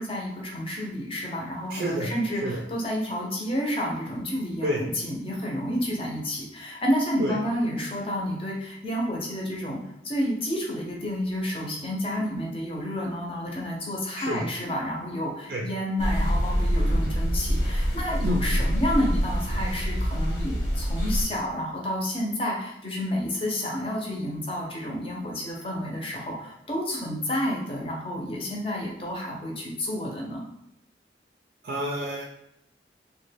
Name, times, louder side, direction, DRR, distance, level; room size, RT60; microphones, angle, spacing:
voice 1, 0.0-9.8 10.0-30.4, equal, 30° left, -2 dB, 0.7 m, -30 dB
voice 2, 1.7-2.1 2.4-2.6 4.6-4.8 7.2-7.4 14.2-14.4 15.5-15.6 18.2-18.6 31.6-32.2, equal, 50° right, -2 dB, 0.4 m, -29 dB
sound 1, 16.0-21.2, equal, 80° left, 1.2 m, -25 dB
3.1 x 2.2 x 3.3 m, 0.81 s
head